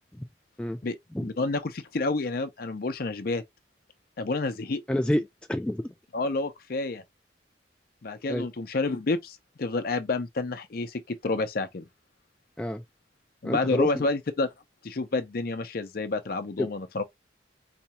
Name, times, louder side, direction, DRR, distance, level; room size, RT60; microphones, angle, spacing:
voice 1, 0.8-3.4 4.2-4.8 6.1-7.0 8.0-11.8 13.4-14.5 14.8-17.0, left 3 dB, 55° left, 0.6 m, -29 dB
voice 2, 4.9-5.9 8.3-8.5 12.6-12.8 13.4-13.9 16.6-16.7, left 1 dB, 5° left, 0.3 m, -28 dB
4.1 x 2.3 x 2.8 m
head